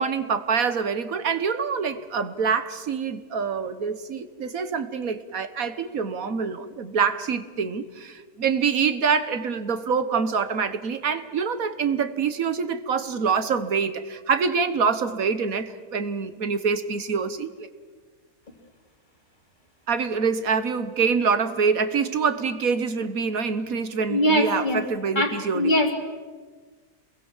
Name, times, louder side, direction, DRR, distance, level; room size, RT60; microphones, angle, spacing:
voice 1, 0.0-17.7 19.9-25.7, right 5 dB, 70° right, 1.6 m, -25 dB
voice 2, 24.1-24.8 25.1-25.9, equal, 30° left, 2.9 m, -22 dB
27.5 x 21.5 x 7.3 m
omnidirectional pair, 1.6 m